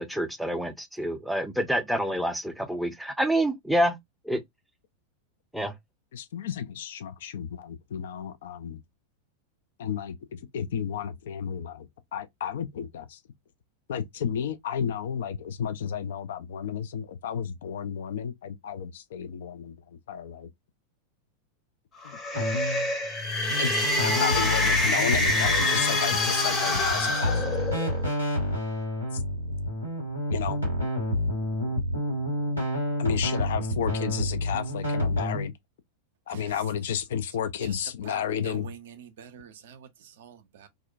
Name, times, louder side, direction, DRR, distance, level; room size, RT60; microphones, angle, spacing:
voice 1, 0.0-4.0 4.3-4.4 5.5-5.7, right 1 dB, ahead, 0.5 m, -27 dB
voice 2, 6.1-8.8 9.8-13.2 13.9-19.8 20.1-20.5 22.0-22.2 23.6-27.6 29.1-29.2 29.5-29.6 30.3-30.6 31.6-31.7 33.0-35.5 36.3-38.7, left 8 dB, 60° left, 0.3 m, -32 dB
sound 1, 22.0-28.1, left 2 dB, 25° left, 0.8 m, -26 dB
sound 2, 22.3-35.5, left 1 dB, 85° left, 1.4 m, -29 dB
voice 3, 36.3-36.6 37.6-37.8 38.0-40.7, right 8 dB, 55° right, 0.4 m, -46 dB
2.4 x 2.1 x 2.4 m
figure-of-eight pair, 90°, 0 cm